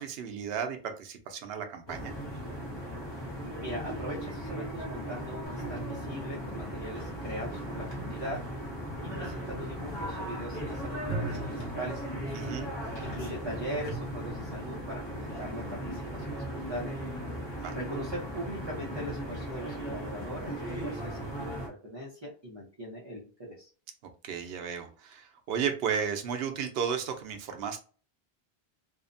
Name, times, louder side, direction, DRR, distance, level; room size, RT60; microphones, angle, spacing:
voice 1, 0.0-2.1 12.3-12.7 17.6-17.8 24.2-27.8, right 7 dB, 75° right, 6 dB, 0.8 m, -34 dB
sound 1, 1.9-21.7, equal, 30° left, 0.7 m, -37 dB
voice 2, 3.6-8.4 9.2-12.0 13.0-16.9 17.7-23.7, equal, 30° right, -4 dB, 0.6 m, -40 dB
sound 2, 5.5-14.0, right 3 dB, 70° left, 1.1 m, -44 dB
2.7 x 2.0 x 2.5 m, 0.38 s
omnidirectional pair, 1.1 m